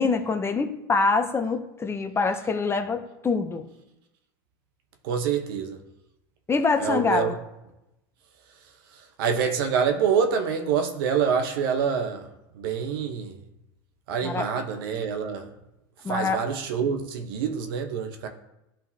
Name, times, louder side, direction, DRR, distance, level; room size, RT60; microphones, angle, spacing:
voice 1, 0.0-3.7 6.5-7.4 14.2-14.5 16.0-16.4, left 4 dB, 20° left, 7 dB, 0.7 m, -25 dB
voice 2, 5.0-5.8 6.8-7.3 9.2-12.3 12.5-13.3 14.1-15.5 16.1-18.3, right 7 dB, 75° right, 6 dB, 1.0 m, -26 dB
11.5 x 3.8 x 2.8 m, 0.91 s
supercardioid pair, 105°, 12 cm